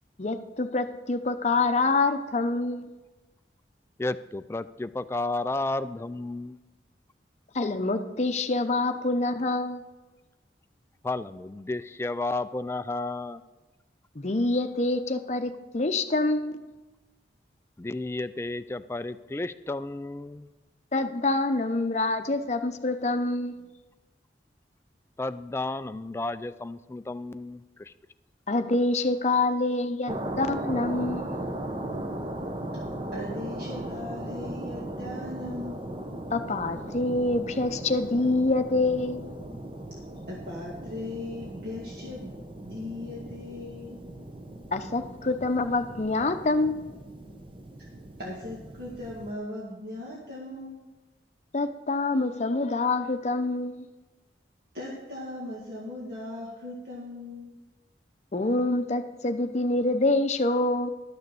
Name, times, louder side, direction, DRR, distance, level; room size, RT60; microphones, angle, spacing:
voice 1, 0.2-2.8 7.5-9.8 14.2-16.7 20.9-23.6 28.5-31.4 36.3-39.3 44.7-47.0 51.5-53.9 58.3-60.9, left 2 dB, 40° left, 8 dB, 0.7 m, -26 dB
voice 2, 4.0-6.6 11.0-13.4 17.8-20.5 25.2-27.9, left 2 dB, 15° left, 12 dB, 0.3 m, -32 dB
sound 1, 30.1-49.3, right 1 dB, 30° right, 0.8 m, -38 dB
voice 3, 33.1-35.8 40.3-44.0 48.2-50.8 54.7-57.5, left 2 dB, 60° right, -5 dB, 1.9 m, -38 dB
12.0 x 6.5 x 6.9 m, 1.1 s
head